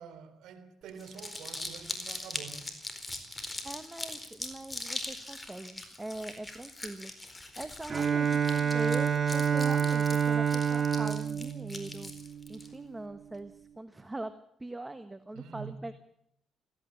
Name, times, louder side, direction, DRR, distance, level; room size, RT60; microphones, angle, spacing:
voice 1, 0.0-2.8 15.3-15.8, right 7 dB, 85° right, 3.4 m, -46 dB
Crumpling crinkling, 0.9-12.7, left 2 dB, 15° left, 4.4 m, -41 dB
voice 2, 3.6-7.1 7.6-12.1 12.5-14.3 14.6-15.9, right 2 dB, 15° right, 1.3 m, -41 dB
Bowed string instrument, 7.9-12.7, right 7 dB, 40° right, 1.4 m, -28 dB
17.0 x 16.0 x 9.7 m
cardioid pair, 90°, 0 cm